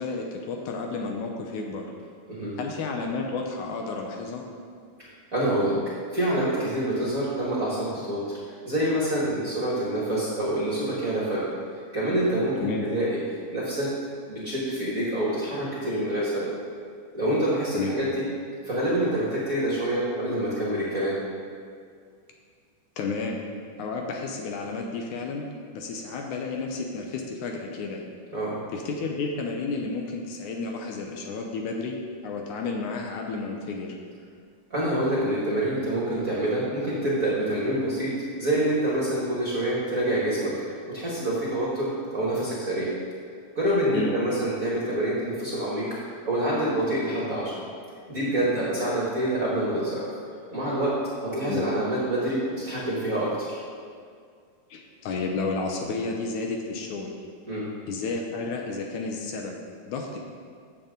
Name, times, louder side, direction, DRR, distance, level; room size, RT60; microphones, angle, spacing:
voice 1, 0.0-1.9 2.6-4.4 12.6-12.8 17.7-18.0 23.0-23.4 23.8-25.4 25.7-28.0 28.7-32.0 32.2-34.0 43.9-44.1 51.5-51.7 54.7-57.1 57.9-59.6 59.9-60.2, left 4 dB, 75° left, 1 dB, 2.2 m, -31 dB
voice 2, 5.0-5.8 6.1-8.4 8.6-11.5 11.9-13.9 14.3-16.5 17.1-18.2 18.6-21.2 28.3-28.6 34.7-40.5 40.9-42.9 43.5-45.9 46.2-47.5 48.1-50.1 50.5-50.9 51.2-53.6 57.5-57.6, right 1 dB, 35° right, -6 dB, 1.6 m, -26 dB
14.0 x 7.2 x 3.9 m, 2.1 s
omnidirectional pair, 3.7 m